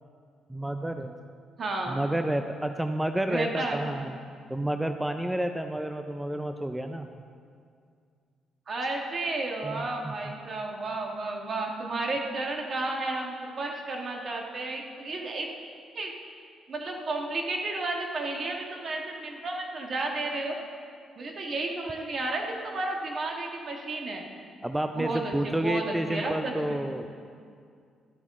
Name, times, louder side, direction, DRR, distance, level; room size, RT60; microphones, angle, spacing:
voice 1, 0.5-1.1 1.9-4.2 4.5-7.1 9.6-10.3 24.6-27.1, right 1 dB, 5° right, 7 dB, 0.4 m, -30 dB
voice 2, 1.6-2.0 3.3-4.0 8.7-15.5 15.9-16.1 16.7-20.6 21.2-24.2 25.0-26.8, right 2 dB, 50° right, 1 dB, 1.5 m, -32 dB
13.5 x 8.2 x 3.7 m, 2.2 s
cardioid pair, 90°, 0 cm